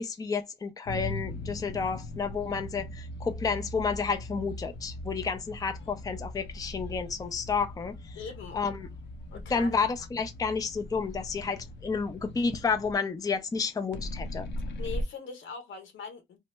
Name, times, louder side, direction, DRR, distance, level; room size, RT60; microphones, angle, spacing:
voice 1, 0.0-8.2 8.5-8.9 9.5-14.5, left 5 dB, 20° left, 0.5 m, -31 dB
sound 1, 0.9-12.9 13.9-15.0, left 1 dB, 60° left, 0.7 m, -39 dB
voice 2, 8.1-8.6 9.3-9.8 14.8-16.4, left 4 dB, 85° left, 1.3 m, -41 dB
2.9 x 2.1 x 3.3 m
cardioid pair, 90°, 20 cm